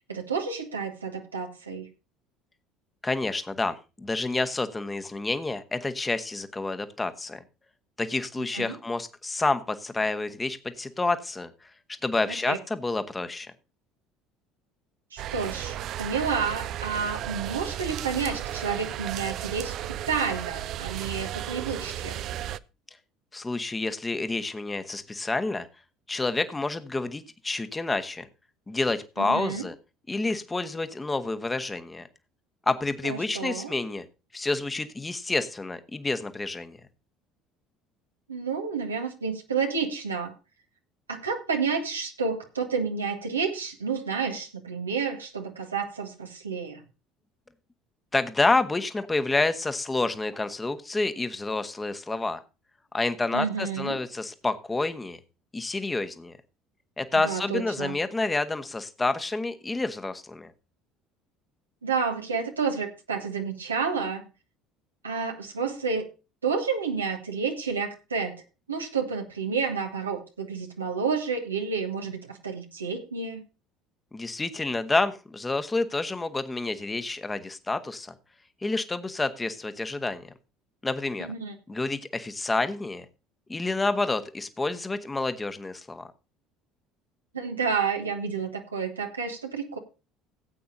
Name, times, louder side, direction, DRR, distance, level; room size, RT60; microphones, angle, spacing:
voice 1, 0.1-1.9 8.5-8.8 12.3-12.6 15.1-22.2 29.2-29.6 33.0-33.7 38.3-40.3 41.1-46.8 53.3-54.0 57.1-58.0 61.8-64.2 65.0-66.0 66.4-68.4 68.7-73.4 81.2-81.5 87.3-89.8, right 5 dB, 85° right, 3 dB, 1.4 m, -30 dB
voice 2, 3.0-7.4 8.0-11.5 12.0-13.5 23.3-25.7 26.1-28.3 28.7-29.7 30.1-32.1 32.7-34.0 34.3-36.8 48.1-52.4 52.9-55.2 55.5-56.3 57.0-60.5 74.1-78.1 78.6-80.3 80.8-81.3 81.7-83.0 83.5-86.1, left 3 dB, 15° left, 10 dB, 1.3 m, -29 dB
sound 1, 15.2-22.6, right 12 dB, 55° right, 0.4 m, -34 dB
17.5 x 8.4 x 2.7 m, 0.29 s
figure-of-eight pair, 60°, 0 cm